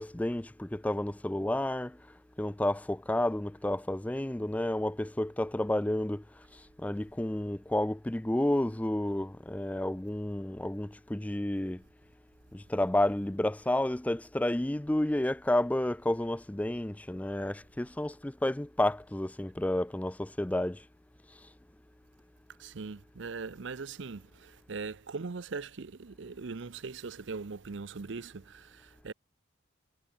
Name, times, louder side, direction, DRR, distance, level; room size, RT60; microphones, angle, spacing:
voice 1, 0.0-1.9 2.4-6.2 6.8-11.8 12.5-20.8, left 1 dB, 5° left, 0.4 m, -30 dB
voice 2, 22.6-29.1, right 4 dB, 70° right, 0.6 m, -40 dB
head